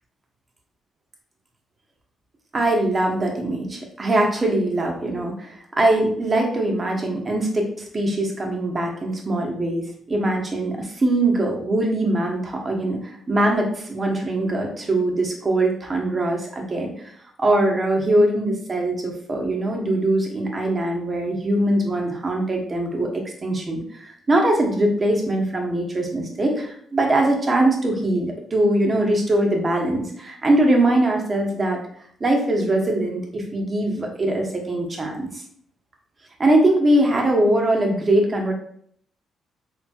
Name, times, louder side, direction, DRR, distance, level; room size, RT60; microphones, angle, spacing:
voice 1, 2.5-17.1 17.4-31.8 32.2-35.4 36.4-38.5, right 1 dB, 30° right, 1 dB, 1.0 m, -22 dB
4.3 x 3.6 x 2.4 m, 0.63 s
cardioid pair, 90°, 0 cm